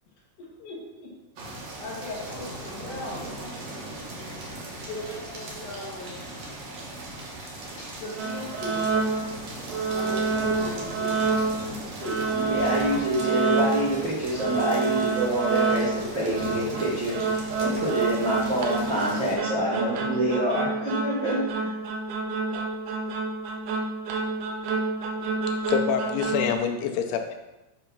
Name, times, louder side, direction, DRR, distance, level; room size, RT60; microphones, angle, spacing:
voice 1, 0.4-1.1 1.8-3.7 4.9-6.1 7.8-8.9 9.9-11.4 11.7-12.5, left 1 dB, 65° left, -4 dB, 2.4 m, -38 dB
sound 1, 1.4-19.4, right 1 dB, 70° right, 1.7 m, -39 dB
sound 2, 8.2-9.4 9.7-11.7 12.0-14.0 14.3-26.5, right 4 dB, 85° right, 2.6 m, -28 dB
voice 2, 12.3-21.7, right 1 dB, 50° right, -9 dB, 1.5 m, -27 dB
voice 3, 25.1-27.4, left 7 dB, 90° left, 5 dB, 2.7 m, -27 dB
7.7 x 2.8 x 5.2 m, 1.0 s
omnidirectional pair, 4.5 m